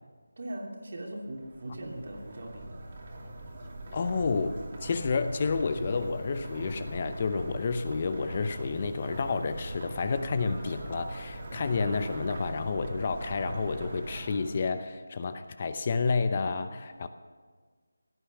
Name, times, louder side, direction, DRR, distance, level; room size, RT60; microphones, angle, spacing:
voice 1, 0.4-2.8, right 1 dB, 50° right, 1 dB, 2.8 m, -40 dB
sound 1, 1.3-14.7, right 1 dB, 35° right, 2.6 m, -41 dB
voice 2, 3.9-17.1, left 4 dB, 30° left, 10 dB, 0.7 m, -30 dB
16.5 x 10.0 x 6.9 m, 1.5 s
figure-of-eight pair, 165°, 0 cm